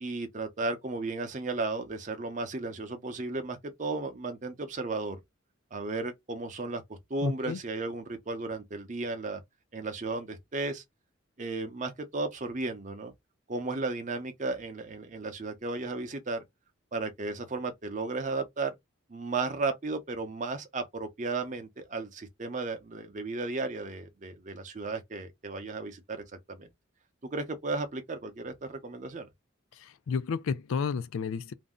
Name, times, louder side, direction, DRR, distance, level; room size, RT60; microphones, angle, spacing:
voice 1, 0.0-5.2 5.7-9.4 9.7-10.8 11.4-13.1 13.5-16.4 16.9-18.7 19.1-26.7 27.3-29.3, right 3 dB, 35° right, 0.6 m, -34 dB
voice 2, 7.2-7.6 29.7-31.5, left 5 dB, 80° left, 0.4 m, -32 dB
2.6 x 2.0 x 3.5 m
head